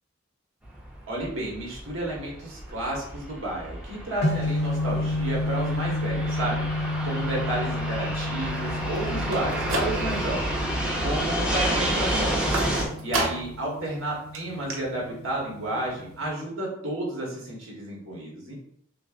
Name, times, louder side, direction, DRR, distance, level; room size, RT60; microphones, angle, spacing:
Fixed-wing aircraft airplane, 0.6-12.8, right 1 dB, 5° right, 0.7 m, -30 dB
voice 1, 1.1-6.6 7.0-10.6 11.0-12.6 13.0-18.5, right 1 dB, 70° right, -2 dB, 1.3 m, -31 dB
sound 1, 4.2-16.3, left 2 dB, 55° left, 0.7 m, -31 dB
sound 2, 9.2-10.4 10.8-11.3 12.5-13.6 14.0-14.1 14.3-14.4 14.7-14.8, right 2 dB, 90° right, 0.8 m, -31 dB
6.2 x 2.1 x 2.4 m, 0.67 s
head